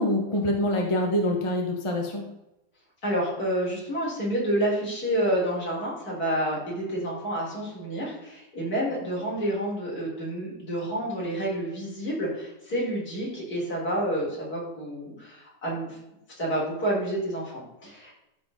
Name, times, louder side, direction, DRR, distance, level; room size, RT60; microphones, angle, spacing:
voice 1, 0.0-2.3, left 1 dB, 20° left, 1 dB, 1.1 m, -25 dB
voice 2, 3.0-16.0 16.4-18.2, right 1 dB, 55° left, -5 dB, 4.2 m, -29 dB
13.5 x 4.7 x 3.8 m, 0.92 s
omnidirectional pair, 1.9 m